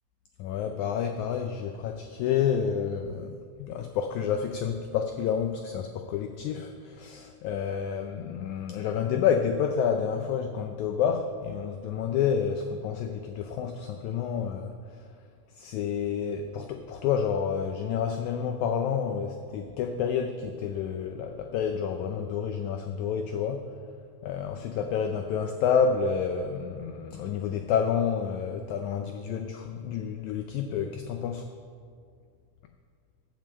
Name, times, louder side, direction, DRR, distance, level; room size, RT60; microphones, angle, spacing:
voice 1, 0.4-15.1 15.5-23.7 24.2-31.5, left 7 dB, 80° left, 6 dB, 1.7 m, -29 dB
12.5 x 5.5 x 7.4 m, 2.2 s
omnidirectional pair, 3.9 m